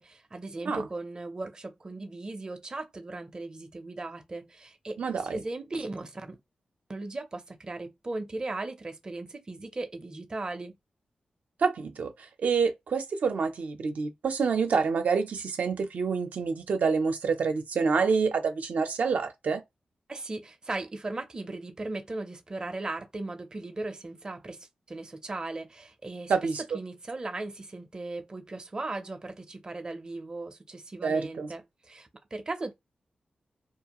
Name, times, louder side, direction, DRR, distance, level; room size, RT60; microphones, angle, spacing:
voice 1, 0.0-6.4 6.9-10.8 20.1-32.7, right 2 dB, 30° right, 0.5 m, -37 dB
voice 2, 5.0-5.4 11.6-19.6 26.3-26.6 31.0-31.5, right 5 dB, 80° right, 0.5 m, -27 dB
2.4 x 2.4 x 2.9 m
wide cardioid pair, 130°, 3 cm